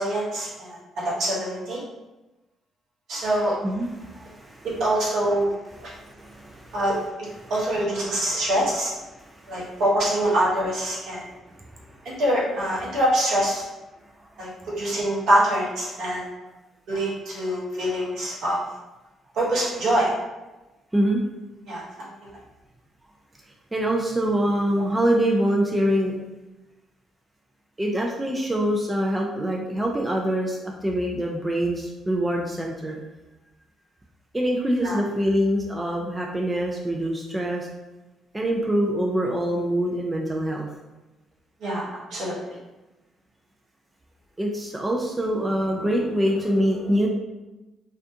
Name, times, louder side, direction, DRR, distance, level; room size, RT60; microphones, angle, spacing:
voice 1, 0.0-1.8 3.1-3.6 4.8-5.5 5.8-5.9 6.7-7.0 7.5-8.9 9.5-11.2 12.0-13.6 14.4-16.2 16.9-18.6 19.3-20.1 21.7-22.1 34.8-35.0 41.6-42.3, right 1 dB, 65° right, -6 dB, 0.9 m, -24 dB
voice 2, 3.6-4.7 5.8-6.8 7.4-7.5 9.2-9.8 11.2-11.4 11.7-12.0 14.2-14.3 20.9-21.2 23.7-26.2 27.8-33.0 34.3-37.7 38.3-40.7 44.4-47.1, equal, 15° right, -1 dB, 0.4 m, -25 dB
2.4 x 2.2 x 2.7 m, 1.1 s
hypercardioid pair, 50°, 0 cm